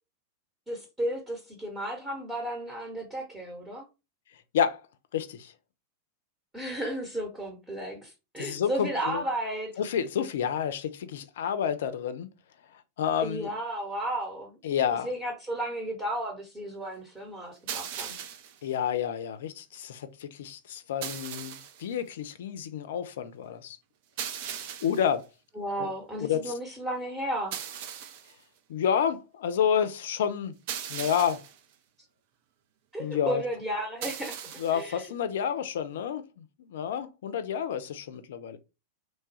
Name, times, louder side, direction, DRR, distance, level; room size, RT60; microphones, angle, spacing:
voice 1, 0.7-3.9 6.5-9.8 13.2-14.6 15.0-18.2 25.6-27.6 32.9-34.4 34.7-35.0, right 1 dB, 15° right, 0.9 m, -33 dB
voice 2, 5.1-5.5 8.4-9.2 9.8-12.3 12.7-13.5 14.6-15.1 18.6-23.8 24.6-25.3 25.8-25.9 26.2-26.5 28.7-30.6 30.9-31.4 33.0-33.4 34.6-38.6, left 8 dB, 60° left, 0.4 m, -29 dB
sound 1, 17.7-18.6 21.0-21.8 24.2-25.1 27.5-28.3 30.7-31.6 34.0-34.8, right 9 dB, 50° right, 0.4 m, -38 dB
3.0 x 2.2 x 2.7 m
figure-of-eight pair, 90°, 0 cm